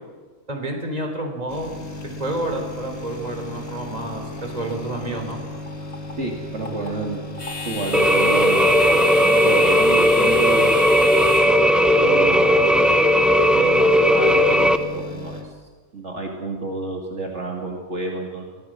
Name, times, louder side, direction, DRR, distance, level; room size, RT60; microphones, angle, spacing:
voice 1, 0.5-1.7 2.2-5.4, right 1 dB, 30° right, 3 dB, 3.7 m, -29 dB
sound 1, 1.5-15.4, left 1 dB, 65° left, 3.4 m, -35 dB
sound 2, 2.3-13.6, left 3 dB, 50° left, 3.3 m, -36 dB
voice 2, 6.2-7.2 7.6-10.8 12.0-12.7 13.5-15.4 15.9-18.4, right 2 dB, 55° right, 0 dB, 2.8 m, -30 dB
sound 3, 7.9-14.8, equal, ahead, 0.8 m, -16 dB
24.0 x 17.0 x 7.7 m, 1.4 s
omnidirectional pair, 1.5 m